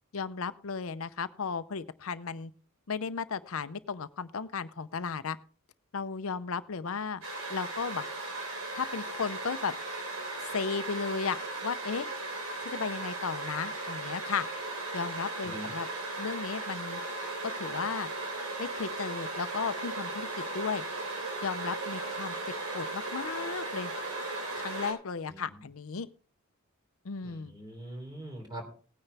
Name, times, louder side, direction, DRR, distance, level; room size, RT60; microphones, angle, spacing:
voice 1, 0.1-2.5 2.9-5.4 5.9-7.2 7.5-8.0 8.7-9.7 10.5-12.1 12.6-14.5 14.9-15.9 16.2-17.0 17.4-18.1 18.6-20.8 21.4-22.3 22.7-23.9 24.6-26.1 27.0-27.5, left 5 dB, 75° left, 13 dB, 0.6 m, -35 dB
sound 1, 7.2-24.9, right 2 dB, 90° right, 3.6 m, -37 dB
voice 2, 27.2-28.6, right 1 dB, 20° right, 2 dB, 3.3 m, -43 dB
17.5 x 9.8 x 3.4 m, 0.40 s
head